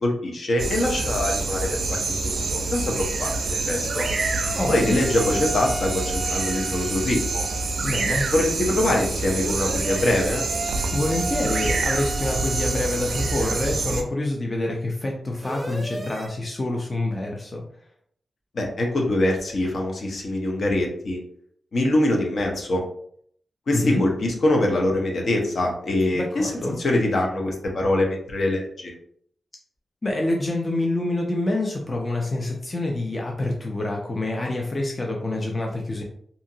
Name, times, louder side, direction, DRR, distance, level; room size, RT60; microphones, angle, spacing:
voice 1, 0.0-4.0 4.7-7.4 8.3-10.5 18.5-21.2 21.7-22.8 23.7-26.5 26.8-28.9, left 1 dB, 65° left, 0 dB, 0.7 m, -24 dB
sound 1, 0.6-14.0, right 3 dB, 80° right, 0.4 m, -27 dB
sound 2, 3.8-7.8 9.4-13.7 15.4-16.3, equal, 15° right, 0.6 m, -35 dB
voice 2, 4.5-5.0 7.8-8.3 10.9-17.6 23.7-24.0 26.1-26.8 30.0-36.0, left 2 dB, 30° left, 0 dB, 0.5 m, -26 dB
2.7 x 2.4 x 2.7 m, 0.64 s
wide cardioid pair, 110°, 0 cm